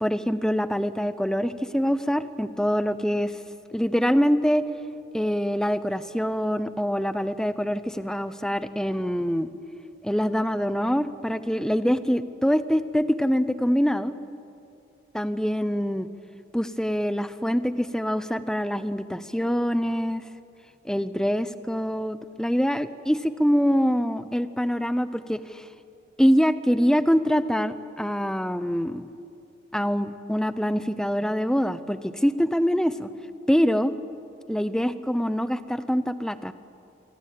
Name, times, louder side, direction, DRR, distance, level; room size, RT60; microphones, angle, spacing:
voice 1, 0.0-3.3 3.7-4.6 5.1-9.5 10.0-14.1 15.1-16.1 16.5-20.2 20.8-25.7 26.2-29.1 29.7-33.1 33.5-33.9 34.5-36.5, equal, 5° left, 13 dB, 0.7 m, -24 dB
27.0 x 23.5 x 8.6 m, 2.7 s
head